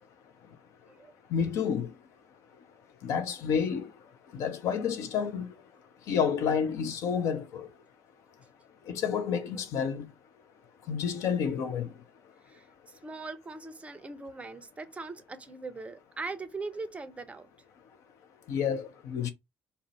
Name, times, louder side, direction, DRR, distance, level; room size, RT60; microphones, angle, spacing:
voice 1, 1.3-1.9 3.0-3.9 4.3-5.5 6.1-7.7 8.9-10.1 10.9-11.9 18.5-19.3, left 7 dB, 55° left, 0.4 m, -29 dB
voice 2, 12.5-17.5, right 3 dB, 20° right, 0.5 m, -41 dB
2.4 x 2.0 x 2.8 m
figure-of-eight pair, 50°, 6 cm